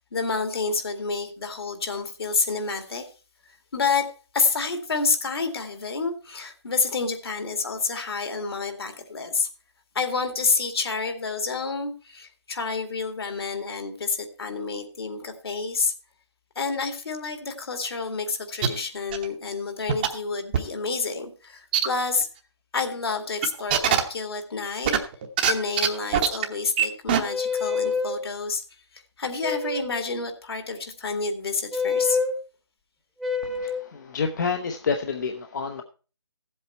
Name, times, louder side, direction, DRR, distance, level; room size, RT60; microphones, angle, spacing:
voice 1, 0.1-3.1 3.7-9.5 9.9-15.9 16.6-22.3 22.7-25.0 25.4-32.2, left 4 dB, 60° left, 6 dB, 2.2 m, -29 dB
sound 1, 18.6-18.7 19.1-19.3 19.9-20.1 20.5-20.6 21.7-21.9 22.2-22.3 23.4-24.0 24.8-25.5 25.8-25.9 26.1-26.4 26.8-26.9 27.1-27.2, right 10 dB, 20° right, 0.9 m, -21 dB
sound 2, 27.3-28.2 29.4-30.0 31.7-32.4 33.2-33.8, left 4 dB, ahead, 1.1 m, -26 dB
voice 2, 33.4-35.8, left 5 dB, 40° left, 5 dB, 0.9 m, -29 dB
14.5 x 7.8 x 4.3 m, 0.36 s
hypercardioid pair, 160°, 14 cm